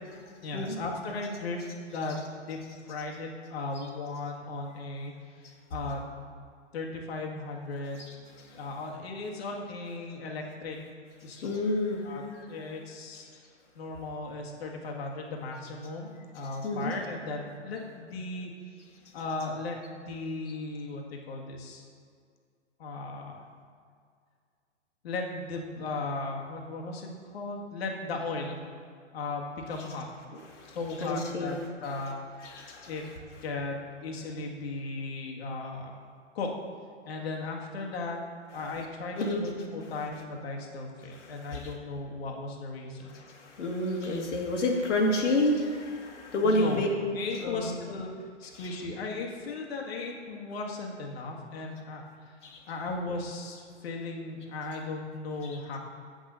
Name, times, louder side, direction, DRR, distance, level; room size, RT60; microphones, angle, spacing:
voice 1, 0.4-1.6 1.9-2.6 2.9-5.1 5.7-6.0 6.7-8.1 8.5-10.8 11.2-11.6 12.0-13.3 13.8-18.8 19.1-21.8 22.8-23.5 25.0-28.6 29.1-30.1 30.7-32.1 32.5-33.1 33.4-36.0 36.3-36.5 37.1-38.2 38.5-43.2 46.4-48.1 48.4-52.0 52.7-55.8, left 3 dB, 55° left, 0 dB, 1.8 m, -36 dB
voice 2, 8.0-8.6 11.3-12.0 12.3-12.4 16.6-16.9 30.5-31.6 32.4-32.9 39.2-39.4 41.1-41.7 43.1-46.9 47.4-47.8 48.5-48.6 52.4-52.6 55.4-55.6, left 1 dB, 75° left, 0 dB, 2.2 m, -30 dB
8.1 x 6.5 x 6.8 m, 2.1 s
hypercardioid pair, 145°, 37 cm